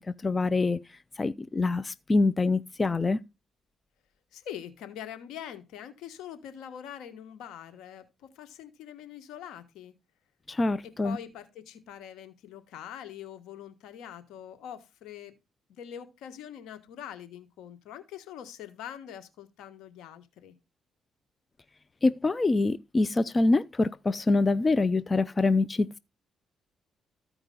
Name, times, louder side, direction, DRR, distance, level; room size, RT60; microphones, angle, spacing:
voice 1, 0.2-0.8 1.2-3.2 10.5-11.2 22.0-26.0, left 3 dB, 25° left, 0.5 m, -25 dB
voice 2, 4.3-9.9 10.8-15.4 15.7-20.5, left 10 dB, 90° left, 1.4 m, -44 dB
14.0 x 4.9 x 3.8 m
cardioid pair, 90°, 0 cm